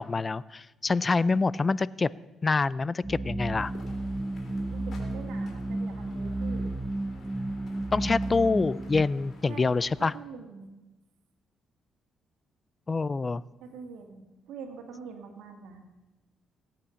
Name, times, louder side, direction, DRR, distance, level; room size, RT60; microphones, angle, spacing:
voice 1, 0.0-2.1 2.4-3.7 7.9-10.1 12.9-13.4, left 4 dB, 30° left, 20 dB, 0.4 m, -26 dB
sound 1, 3.0-9.0, right 2 dB, 10° right, 0.9 m, -32 dB
sound 2, 3.5-10.1, left 2 dB, 60° left, 3.2 m, -50 dB
voice 2, 4.7-6.8 9.5-10.7 13.6-15.8, right 5 dB, 85° right, 5 dB, 2.1 m, -44 dB
17.5 x 8.8 x 7.0 m, 1.1 s
cardioid pair, 90°, 0 cm